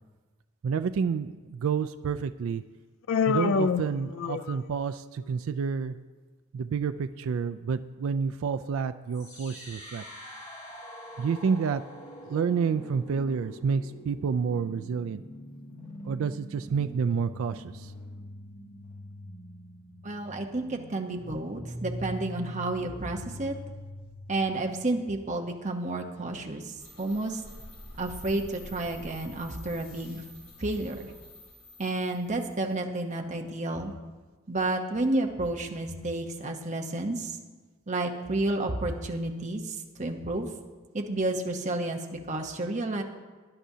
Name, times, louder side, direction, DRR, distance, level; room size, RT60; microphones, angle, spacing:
voice 1, 0.6-2.6 3.3-6.0 6.5-10.0 11.2-11.8 12.2-15.2 16.1-17.9, right 6 dB, 70° right, 11 dB, 0.3 m, -29 dB
Human voice, 3.1-4.8, left 5 dB, 65° left, 0.4 m, -27 dB
sound 1, 9.1-25.1, equal, 35° left, 2.2 m, -43 dB
voice 2, 20.0-23.6 24.3-27.4 28.0-30.2 30.6-31.1 31.8-33.9 34.5-37.4 37.9-40.5 40.9-43.0, right 2 dB, 35° right, 3 dB, 0.9 m, -31 dB
sound 2, 26.8-32.6, left 1 dB, 85° left, 3.8 m, -48 dB
17.5 x 10.0 x 2.8 m, 1.4 s
head